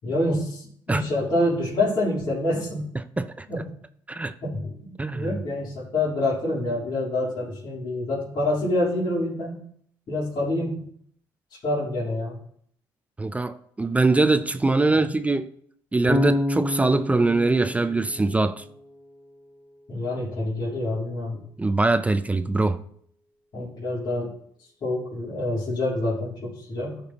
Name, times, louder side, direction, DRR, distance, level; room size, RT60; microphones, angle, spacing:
voice 1, 0.0-2.9 3.5-3.7 4.4-4.7 5.1-9.6 10.1-10.8 11.6-12.3 14.9-15.1 19.9-21.4 23.5-24.3 24.8-27.0, left 1 dB, 55° left, 3.6 m, -27 dB
voice 2, 13.2-15.5 15.9-18.6 21.6-22.8, right 3 dB, 15° right, 0.4 m, -22 dB
Bass guitar, 16.1-19.1, left 1 dB, 5° left, 2.7 m, -28 dB
13.0 x 5.2 x 3.0 m
supercardioid pair, 75°, 9 cm